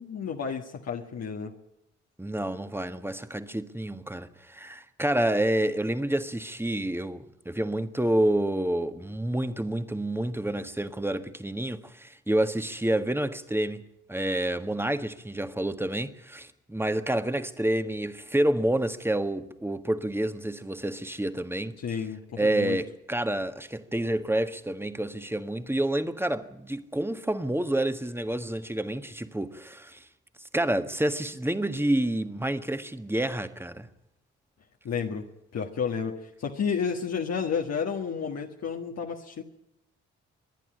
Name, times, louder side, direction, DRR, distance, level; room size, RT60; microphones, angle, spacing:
voice 1, 0.0-1.5 21.8-22.8 34.8-39.4, left 6 dB, 55° left, 1.6 m, -31 dB
voice 2, 2.2-13.8 14.1-21.8 22.4-30.0 30.5-33.9, right 1 dB, 5° right, 1.6 m, -28 dB
25.5 x 11.0 x 9.9 m
hypercardioid pair, 45°, 32 cm